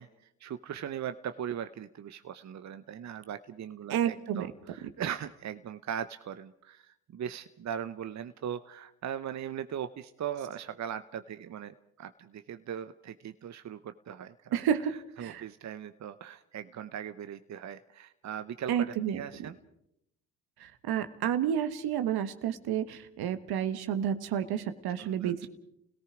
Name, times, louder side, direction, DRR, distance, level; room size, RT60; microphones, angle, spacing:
voice 1, 0.0-14.6 15.2-19.6 25.0-25.5, right 9 dB, 45° right, 11 dB, 0.9 m, -39 dB
voice 2, 3.9-4.5 14.5-15.4 18.7-19.2 20.6-25.5, right 9 dB, 65° right, 10 dB, 1.5 m, -30 dB
30.0 x 17.5 x 5.0 m, 0.79 s
hypercardioid pair, 50°, 40 cm